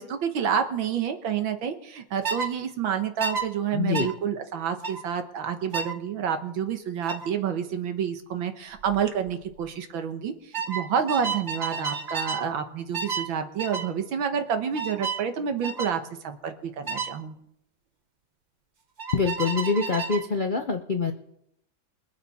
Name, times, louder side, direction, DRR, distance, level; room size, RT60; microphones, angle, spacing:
voice 1, 0.0-17.4, right 7 dB, 80° right, 7 dB, 1.9 m, -29 dB
sound 1, 2.2-2.5 3.2-3.5 3.9-4.1 4.8-5.0 5.7-6.0 7.1-7.3 8.7-9.0 9.3-9.6 10.5-12.5 12.9-13.3 13.6-13.9 14.7-15.2 15.6-15.9 16.9-17.1 19.0-20.3, right 5 dB, 55° right, 0.4 m, -31 dB
voice 2, 3.7-4.1 19.1-21.1, left 4 dB, 65° left, 5 dB, 0.4 m, -25 dB
23.0 x 8.4 x 4.2 m, 0.77 s
omnidirectional pair, 2.2 m